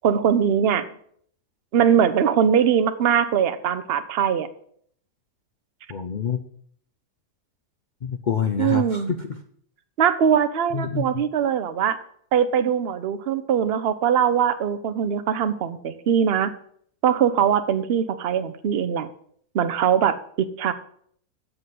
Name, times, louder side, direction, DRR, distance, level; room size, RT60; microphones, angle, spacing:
voice 1, 0.0-0.9 1.7-4.5 8.6-9.1 10.0-12.0 12.3-16.5 17.0-19.1 19.5-20.7, right 8 dB, 50° right, 11 dB, 0.8 m, -21 dB
voice 2, 5.9-6.4 8.0-9.0 10.7-11.1, left 7 dB, 75° left, 6 dB, 0.4 m, -26 dB
8.0 x 6.1 x 7.5 m, 0.62 s
omnidirectional pair, 1.7 m